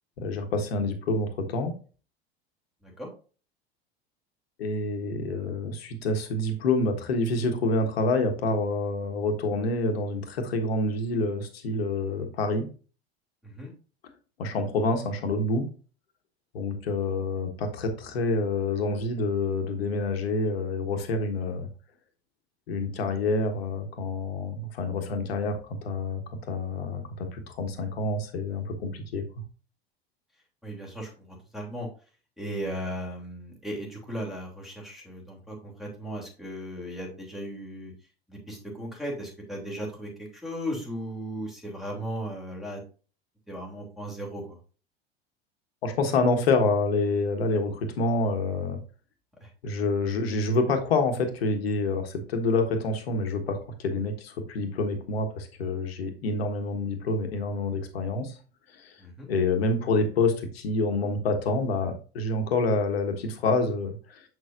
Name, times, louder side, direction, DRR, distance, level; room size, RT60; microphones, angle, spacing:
voice 1, 0.2-1.7 4.6-12.7 14.4-15.7 16.5-21.7 22.7-29.2 45.8-48.8 49.6-58.4 58.7-58.9 59.3-64.2, left 3 dB, 70° left, 5 dB, 1.4 m, -27 dB
voice 2, 30.6-31.9 32.4-37.9 38.3-42.8 43.5-44.6 49.4-49.5 59.0-59.3, equal, ahead, -1 dB, 2.8 m, -36 dB
7.1 x 6.4 x 2.5 m, 0.37 s
figure-of-eight pair, 80°, 31 cm